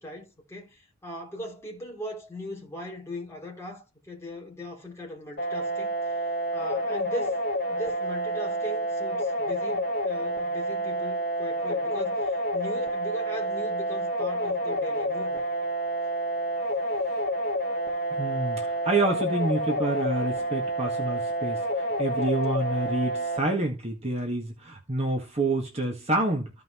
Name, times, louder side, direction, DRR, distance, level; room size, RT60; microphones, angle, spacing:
voice 1, 0.0-6.1 6.5-7.4 7.7-15.5 18.6-18.7, left 1 dB, 10° left, 3.5 m, -39 dB
sound 1, 5.4-23.4, right 1 dB, 45° left, 2.7 m, -29 dB
voice 2, 18.1-21.6 22.0-26.5, right 2 dB, 30° right, 1.7 m, -28 dB
14.5 x 5.6 x 3.1 m
head